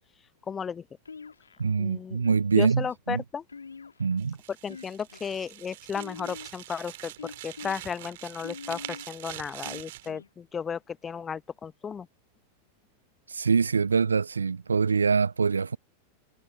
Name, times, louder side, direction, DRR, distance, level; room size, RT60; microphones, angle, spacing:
voice 1, 0.5-0.8 1.8-2.2 2.5-3.4 4.6-12.1, left 6 dB, 20° left, 0.9 m, -34 dB
sound 1, 1.1-1.7 2.2-2.8 3.5-4.2 4.6-5.3 5.9-6.6 7.2-7.8 8.4-9.1 9.6-10.3, left 5 dB, 75° left, 2.1 m, -44 dB
voice 2, 1.6-3.2 4.0-4.4 13.3-15.8, right 5 dB, 75° right, 0.4 m, -24 dB
sound 2, 4.2-10.1, right 16 dB, 55° right, 2.0 m, -44 dB
figure-of-eight pair, 90°, 0 cm